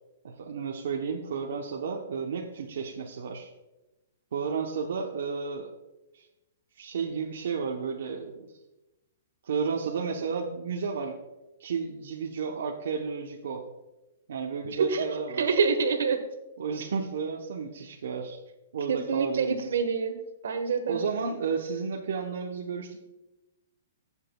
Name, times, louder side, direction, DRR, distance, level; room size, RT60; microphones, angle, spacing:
voice 1, 0.2-3.5 4.3-5.7 6.1-6.3 6.8-8.6 9.4-11.2 11.6-13.6 14.3-15.4 16.6-18.4 18.7-19.7 20.9-23.1, right 5 dB, 65° right, 0 dB, 0.8 m, -32 dB
voice 2, 14.7-15.0 15.4-16.2 18.9-20.2 20.4-21.0, right 5 dB, 80° right, 8 dB, 1.2 m, -26 dB
15.0 x 7.3 x 2.3 m, 1.0 s
hypercardioid pair, 175°, 0 cm